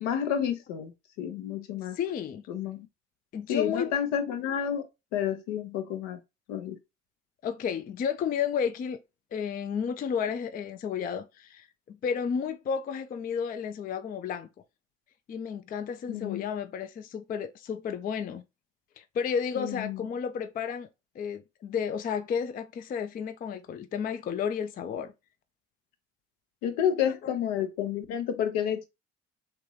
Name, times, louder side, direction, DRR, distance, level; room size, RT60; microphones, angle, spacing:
voice 1, 0.0-2.0 2.5-2.9 3.5-6.2 6.5-6.8 16.1-16.5 19.5-20.1 26.6-28.9, left 9 dB, 65° left, 0.7 m, -30 dB
voice 2, 1.9-2.4 3.3-3.9 7.4-9.0 9.3-14.5 15.3-18.4 19.0-20.9 21.2-25.1, left 7 dB, 25° left, 0.4 m, -32 dB
3.4 x 3.0 x 3.0 m
figure-of-eight pair, 50°, 35 cm